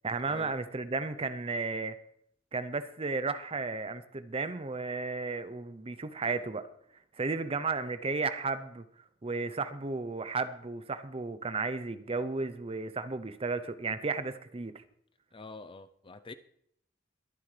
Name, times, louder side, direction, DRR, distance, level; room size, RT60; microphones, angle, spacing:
voice 1, 0.0-2.0 2.5-6.7 7.2-8.8 9.2-14.7, right 4 dB, 30° right, 0.6 m, -34 dB
voice 2, 15.3-16.3, left 3 dB, 25° left, 0.5 m, -45 dB
22.0 x 9.7 x 3.3 m
head